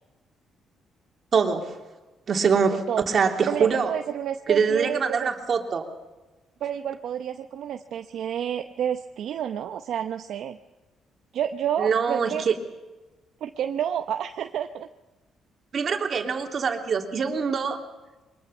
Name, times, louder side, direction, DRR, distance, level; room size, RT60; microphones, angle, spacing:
voice 1, 1.3-1.8 2.3-3.9 4.5-5.9 11.8-12.5 15.7-17.8, right 6 dB, 50° right, 3 dB, 3.1 m, -24 dB
voice 2, 2.7-3.0 3.4-5.3 6.6-10.6 11.3-12.4 13.4-14.9, right 9 dB, 70° right, 8 dB, 0.8 m, -30 dB
23.5 x 20.5 x 7.2 m, 1.1 s
cardioid pair, 90°, 0 cm